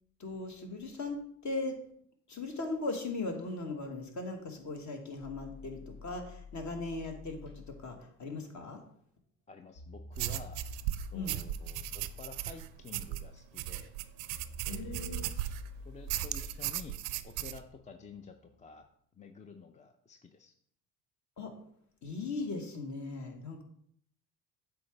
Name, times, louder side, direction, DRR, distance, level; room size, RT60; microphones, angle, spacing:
voice 1, 0.2-1.8 2.3-8.8 11.1-11.4 14.7-15.3 21.4-21.5 22.0-23.6, left 3 dB, 40° left, 4 dB, 1.4 m, -38 dB
sound 1, 5.2-8.0 9.7-18.8, left 3 dB, 75° left, 2.0 m, -49 dB
voice 2, 9.5-10.6 11.1-13.9 14.6-15.4 15.8-18.9 19.1-20.5, left 5 dB, 15° left, 6 dB, 0.5 m, -50 dB
sound 2, 10.1-15.7 16.1-17.6, right 15 dB, 65° right, 0.5 m, -37 dB
7.8 x 4.8 x 3.3 m, 0.67 s
hypercardioid pair, 65°, 44 cm